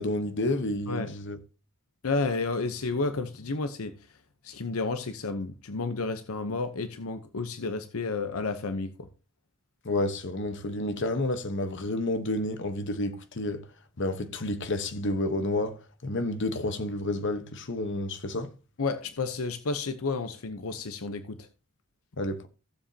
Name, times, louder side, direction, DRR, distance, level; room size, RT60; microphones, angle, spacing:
voice 1, 0.0-1.4 9.8-13.6 14.0-18.5 22.2-22.5, left 1 dB, 60° left, 1.1 m, -30 dB
voice 2, 2.0-3.9 4.4-9.1 18.8-21.5, left 3 dB, 80° left, 0.8 m, -31 dB
15.5 x 7.4 x 2.8 m
head